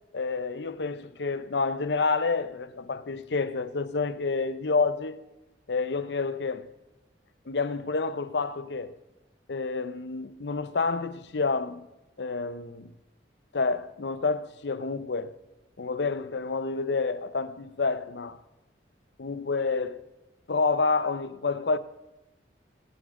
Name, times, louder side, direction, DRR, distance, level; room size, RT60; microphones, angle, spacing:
voice 1, 0.1-5.2 5.7-6.7 7.5-9.0 9.5-11.9 12.2-12.9 13.5-15.4 15.8-18.4 19.2-20.0 20.5-21.8, left 4 dB, 70° left, 0.6 m, -29 dB
22.5 x 8.7 x 3.7 m
head